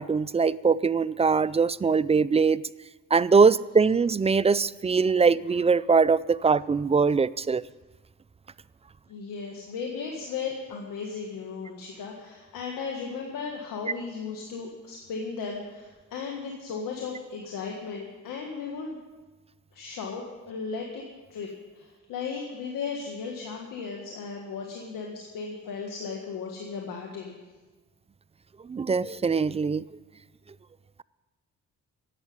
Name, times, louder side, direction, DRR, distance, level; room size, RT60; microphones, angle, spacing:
voice 1, 0.0-2.6 3.1-7.6 28.7-29.8, right 5 dB, 20° right, 18 dB, 0.3 m, -22 dB
voice 2, 9.1-19.0 19.7-21.0 21.3-21.5 21.8-27.4, left 5 dB, 85° left, 0 dB, 1.8 m, -36 dB
11.0 x 8.2 x 9.5 m, 1.2 s
cardioid pair, 75°, 32 cm